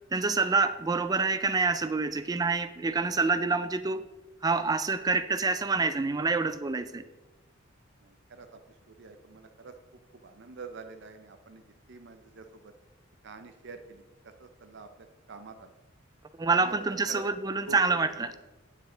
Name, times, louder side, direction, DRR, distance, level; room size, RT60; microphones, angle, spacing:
voice 1, 0.1-4.1 4.4-7.0 16.4-18.3, right 4 dB, 20° right, 11 dB, 0.4 m, -27 dB
voice 2, 8.0-8.6 8.9-9.7 10.2-11.6 11.9-12.7 13.2-14.0 14.4-15.7 16.5-17.2 17.7-17.8, right 4 dB, 60° right, 8 dB, 0.7 m, -46 dB
9.1 x 7.3 x 3.8 m, 1.1 s
head